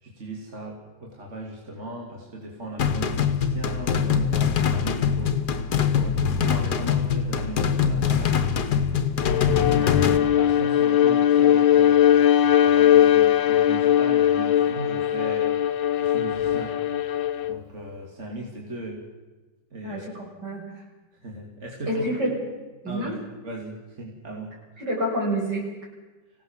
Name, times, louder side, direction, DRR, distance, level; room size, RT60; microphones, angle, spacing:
voice 1, 0.0-5.4 5.9-8.5 9.3-15.5 15.9-16.7 17.5-19.0 19.7-20.2 21.2-22.0 22.9-24.6, right 1 dB, 40° right, -1 dB, 3.1 m, -37 dB
sound 1, 2.8-10.2, left 7 dB, 60° left, 1.7 m, -23 dB
Bowed string instrument, 9.2-17.6, left 10 dB, 90° left, 1.7 m, -20 dB
voice 2, 19.8-20.6 21.9-22.4 22.8-23.1 24.8-25.6, right 1 dB, 65° right, -2 dB, 7.1 m, -28 dB
25.0 x 17.0 x 7.4 m, 1.2 s
omnidirectional pair, 2.0 m